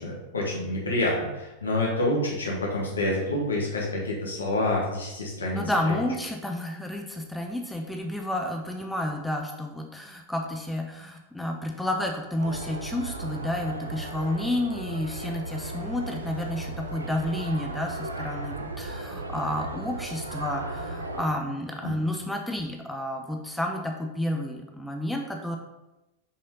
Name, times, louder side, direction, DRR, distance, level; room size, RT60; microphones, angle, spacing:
voice 1, 0.0-5.6 5.9-6.0 21.8-21.9, left 1 dB, 75° left, -3 dB, 2.2 m, -27 dB
voice 2, 5.5-25.6, left 1 dB, 5° left, 2 dB, 0.8 m, -30 dB
sound 1, 12.4-21.2, right 2 dB, 80° right, 0.8 m, -36 dB
6.6 x 5.3 x 4.0 m, 0.98 s
figure-of-eight pair, 90°, 0 cm